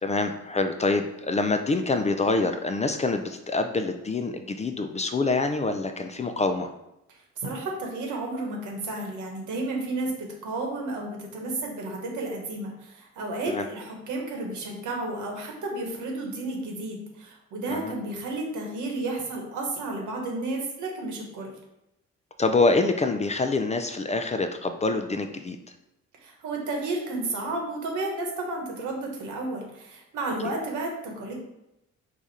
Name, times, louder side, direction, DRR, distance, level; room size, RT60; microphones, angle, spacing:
voice 1, 0.0-6.7 13.5-13.7 17.7-17.9 22.4-25.6 30.4-30.5, left 3 dB, 25° left, 7 dB, 0.4 m, -26 dB
voice 2, 7.4-21.5 26.2-31.3, right 2 dB, 80° right, 1 dB, 1.3 m, -32 dB
4.9 x 2.4 x 4.1 m, 0.88 s
cardioid pair, 90°, 30 cm